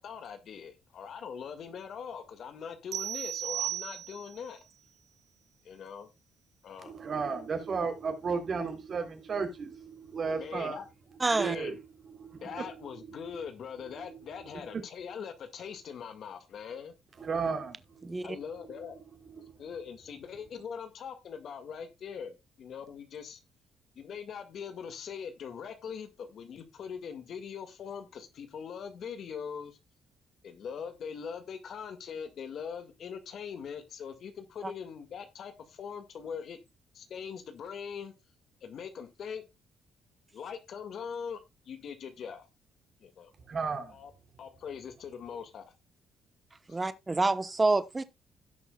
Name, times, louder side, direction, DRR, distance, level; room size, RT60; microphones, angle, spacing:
voice 1, 0.0-4.6 5.6-6.1 6.6-6.9 10.4-10.8 11.4-11.8 12.4-16.9 18.2-19.0 19.6-23.4 24.0-29.8 30.4-36.6 36.9-38.1 38.6-39.4 40.3-42.5 43.0-43.3 43.9-44.1 44.4-45.6 46.7-46.8, left 7 dB, 60° left, 1.8 m, -42 dB
sound 1, 2.9-4.5, right 12 dB, 65° right, 0.6 m, -35 dB
voice 2, 6.8-10.8 11.1-13.4 13.8-14.7 17.2-19.0 19.3-19.5 43.5-44.0, right 5 dB, 45° right, 3.3 m, -35 dB
voice 3, 11.2-11.6 18.0-18.3 34.6-34.7 46.7-48.0, right 3 dB, 20° right, 0.9 m, -27 dB
17.0 x 6.3 x 2.3 m
cardioid pair, 105°, 0 cm